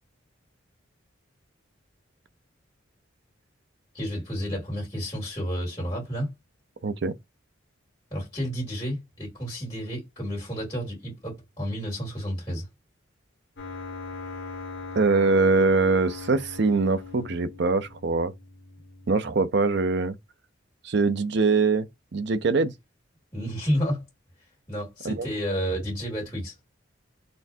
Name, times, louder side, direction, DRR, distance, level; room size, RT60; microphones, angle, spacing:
voice 1, 3.9-6.3 8.1-12.7 23.3-24.0 24.7-26.5, equal, 15° left, 2.6 m, -31 dB
voice 2, 6.8-7.1 15.0-18.3 19.1-20.2 20.8-22.7 25.0-25.3, right 3 dB, 60° right, 0.6 m, -23 dB
sound 1, 13.6-19.6, left 4 dB, 65° left, 1.1 m, -40 dB
4.3 x 3.3 x 2.7 m
head